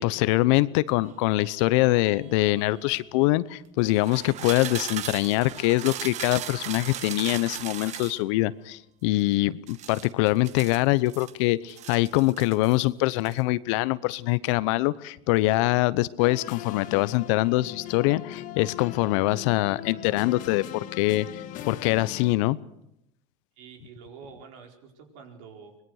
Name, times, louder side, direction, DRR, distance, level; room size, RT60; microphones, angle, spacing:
voice 1, 0.0-21.4 21.7-22.6, left 19 dB, 65° left, 18 dB, 0.9 m, -24 dB
sound 1, 1.0-3.0 3.8-8.2 9.7-11.3 11.7-12.8 13.1-13.4, right 11 dB, 45° right, 1.3 m, -38 dB
sound 2, 16.2-22.3, left 11 dB, 50° left, 1.7 m, -40 dB
voice 2, 23.6-25.8, right 6 dB, 70° right, 2 dB, 4.6 m, -47 dB
24.0 x 20.5 x 6.5 m, 0.83 s
hypercardioid pair, 100°, 17 cm